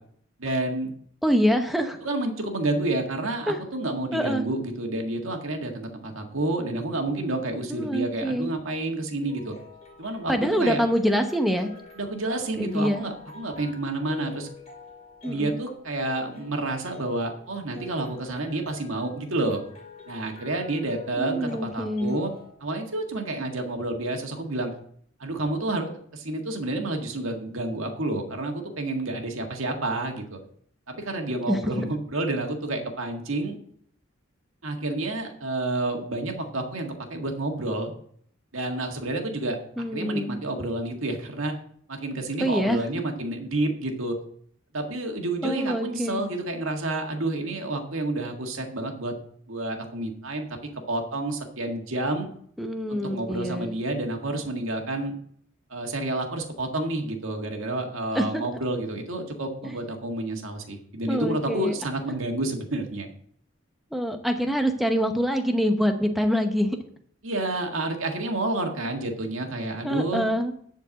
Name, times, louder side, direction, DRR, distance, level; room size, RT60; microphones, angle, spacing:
voice 1, 0.4-0.9 2.0-9.5 10.0-10.8 12.0-14.5 15.3-19.6 20.1-22.3 22.6-24.7 25.2-30.4 30.9-33.6 34.6-37.9 38.5-41.5 41.9-44.2 44.7-49.1 49.5-50.6 50.9-52.3 52.9-55.1 55.7-63.1 67.2-70.3, right 2 dB, 75° right, 3 dB, 1.8 m, -29 dB
voice 2, 1.2-2.0 3.5-3.6 4.1-4.4 7.7-8.5 10.3-11.7 12.6-13.1 15.2-15.6 21.2-22.1 31.5-31.8 39.8-40.4 42.4-42.8 45.4-46.2 52.6-53.6 58.1-58.5 59.6-59.7 61.1-61.7 63.9-66.8 69.8-70.5, equal, ahead, 5 dB, 0.9 m, -25 dB
sound 1, 9.1-22.5, left 5 dB, 30° left, 2.5 m, -47 dB
10.5 x 4.6 x 7.6 m, 0.64 s
head